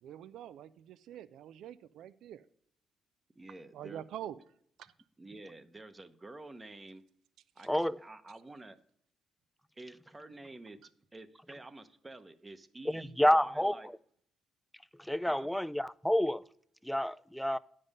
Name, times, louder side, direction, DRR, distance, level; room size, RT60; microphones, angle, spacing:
voice 1, 0.0-2.5 3.7-4.4 4.8-4.9, right 11 dB, 80° right, 0.3 m, -45 dB
voice 2, 3.3-4.0 5.2-7.0 7.6-7.7 8.0-8.8 9.8-10.8 11.1-13.9 15.3-15.5, right 2 dB, 25° right, 0.8 m, -49 dB
voice 3, 7.7-8.0 12.9-14.0 15.0-16.4 16.8-17.6, left 1 dB, 5° left, 0.3 m, -29 dB
9.5 x 5.4 x 5.4 m
supercardioid pair, 70°, 0 cm